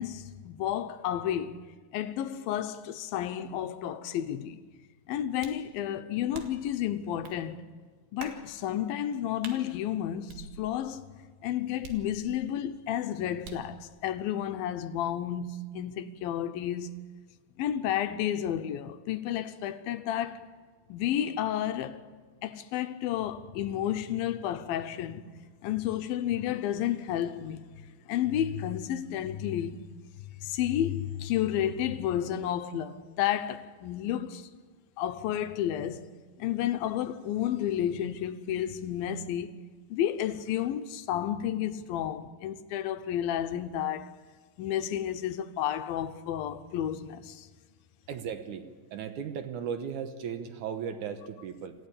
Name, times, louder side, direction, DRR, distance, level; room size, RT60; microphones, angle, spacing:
voice 1, 0.0-1.6 1.9-4.6 5.1-7.6 8.1-11.0 11.4-17.0 17.6-20.4 20.9-22.0 22.4-25.2 25.6-27.6 28.1-29.8 30.4-34.4 35.0-36.1 36.4-39.6 39.9-44.1 44.6-47.5, left 10 dB, 80° left, 2.6 m, -31 dB
sound 1, 5.4-5.7 6.3-6.7 7.2-7.4 8.2-8.5 9.4-9.6 10.3-10.9 11.8-12.5 13.4-13.8, right 5 dB, 90° right, 3.8 m, -46 dB
voice 2, 48.1-48.6 48.9-51.7, right 7 dB, 65° right, 2.2 m, -36 dB
27.5 x 14.5 x 8.4 m
omnidirectional pair, 4.2 m